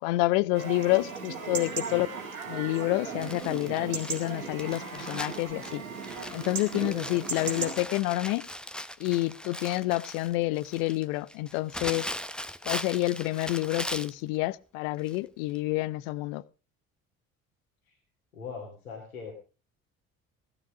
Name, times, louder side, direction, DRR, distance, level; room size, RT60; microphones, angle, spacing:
voice 1, 0.0-2.1 2.5-5.8 6.3-8.5 9.0-12.1 12.7-16.4, left 19 dB, 70° left, 0.7 m, -28 dB
Chatter / Livestock farm animals working animals / Chirp tweet, 0.5-7.7, right 5 dB, 90° right, 2.1 m, -37 dB
Crumpling crinkling, 3.2-14.2 15.1-15.2 15.5-15.6, left 1 dB, ahead, 0.9 m, -39 dB
voice 2, 18.3-19.3, left 5 dB, 90° left, 2.8 m, -40 dB
16.0 x 12.0 x 5.0 m
hypercardioid pair, 55°, 41 cm